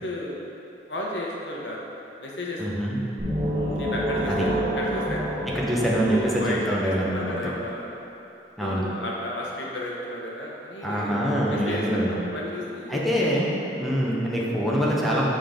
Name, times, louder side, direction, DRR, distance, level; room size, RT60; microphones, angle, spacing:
voice 1, 0.0-0.4 0.9-1.8 2.2-2.6 3.5-5.3 5.9-7.9 8.6-11.2 11.5-13.0 13.7-14.0, left 1 dB, 80° left, -3 dB, 1.1 m, -33 dB
voice 2, 2.6-3.0 4.3-4.4 5.4-7.5 8.6-8.9 10.8-12.2 12.9-13.5 13.8-15.3, equal, ahead, -6 dB, 0.9 m, -25 dB
sound 1, 3.2-7.0, equal, 40° right, 1.3 m, -28 dB
7.7 x 3.8 x 5.0 m, 3.0 s
head